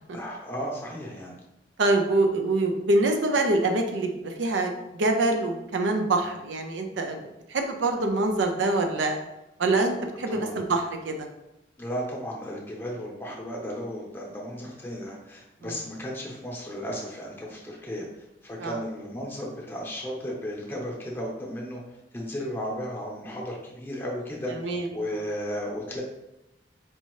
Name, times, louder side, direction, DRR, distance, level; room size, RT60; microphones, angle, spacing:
voice 1, 0.1-1.3 10.3-10.6 11.8-18.1 18.4-21.8 22.1-24.5 24.9-26.0, equal, 10° left, -2 dB, 0.8 m, -34 dB
voice 2, 1.8-7.2 7.5-9.2 9.6-11.3 15.6-15.8 18.6-18.8 24.6-24.9, right 2 dB, 90° right, 4 dB, 0.5 m, -25 dB
4.5 x 2.7 x 3.0 m, 0.93 s
head